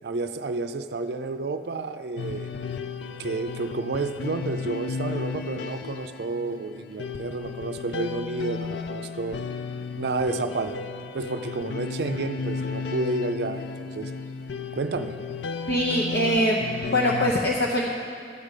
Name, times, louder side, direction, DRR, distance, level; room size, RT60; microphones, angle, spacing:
voice 1, 0.0-2.5 3.2-9.4 10.0-10.8 11.1-14.1 14.7-15.2, right 3 dB, 65° right, 8 dB, 0.5 m, -30 dB
sound 1, 2.2-17.3, left 5 dB, 85° left, 0.5 m, -34 dB
voice 2, 15.7-17.9, equal, 65° left, -2 dB, 0.8 m, -23 dB
13.0 x 5.0 x 8.2 m, 2.4 s
head